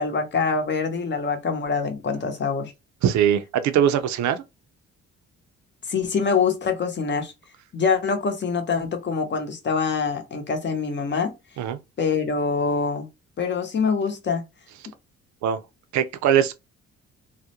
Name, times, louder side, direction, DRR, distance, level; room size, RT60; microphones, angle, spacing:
voice 1, 0.0-2.7 5.9-7.3 7.7-11.3 12.0-13.1 13.4-14.4, left 5 dB, 35° left, 0.8 m, -24 dB
voice 2, 3.0-4.4 11.6-11.8 15.4-15.6 15.9-16.6, right 9 dB, 70° right, 0.5 m, -21 dB
2.3 x 2.1 x 2.8 m
cardioid pair, 90°, 30 cm